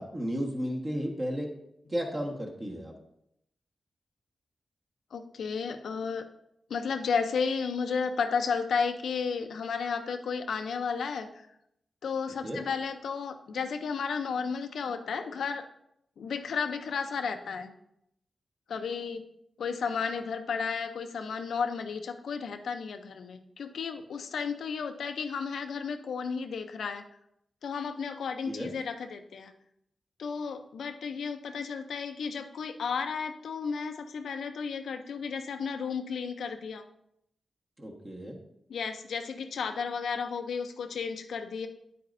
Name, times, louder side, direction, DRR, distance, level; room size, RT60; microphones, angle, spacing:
voice 1, 0.0-1.5 1.9-2.9 12.4-12.6 28.4-28.7 37.8-38.4, equal, 25° right, 0 dB, 1.3 m, -33 dB
voice 2, 5.1-6.2 6.7-11.5 12.0-15.6 16.2-17.7 18.7-19.2 19.6-27.0 27.6-29.5 30.2-36.8 38.7-41.7, left 5 dB, 90° left, 7 dB, 0.6 m, -33 dB
9.3 x 8.4 x 2.6 m, 0.78 s
wide cardioid pair, 110°, 0 cm